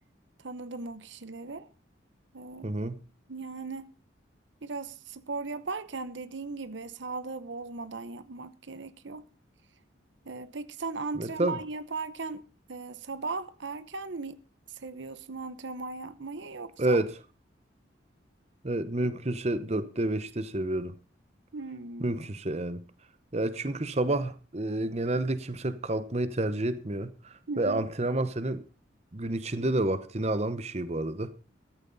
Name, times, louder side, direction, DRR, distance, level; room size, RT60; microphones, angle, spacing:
voice 1, 0.4-1.7 2.3-2.8 3.3-3.9 4.6-9.2 10.2-12.4 12.7-14.4 14.7-17.0 21.5-22.1 27.5-27.9, right 3 dB, 70° right, 0.9 m, -38 dB
voice 2, 2.6-3.0 11.1-11.6 16.8-17.1 18.6-20.9 22.0-22.8 23.3-28.6 29.1-31.3, right 2 dB, 35° right, 0.9 m, -29 dB
14.0 x 14.0 x 4.0 m
head